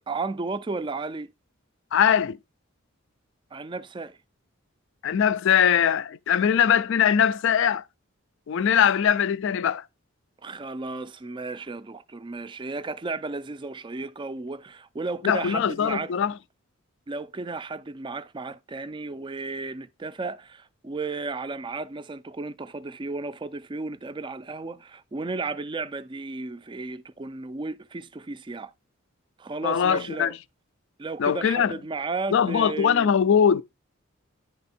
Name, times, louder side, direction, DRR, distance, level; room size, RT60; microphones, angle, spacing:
voice 1, 0.0-1.3 3.5-4.2 10.4-16.1 17.1-28.7 29.4-30.4 31.0-33.1, right 3 dB, 20° right, 0.4 m, -34 dB
voice 2, 1.9-2.4 5.0-7.8 8.5-9.8 15.2-16.3 29.6-30.4 31.2-31.7 32.3-33.6, left 8 dB, 60° left, 0.3 m, -21 dB
9.9 x 3.4 x 4.2 m
head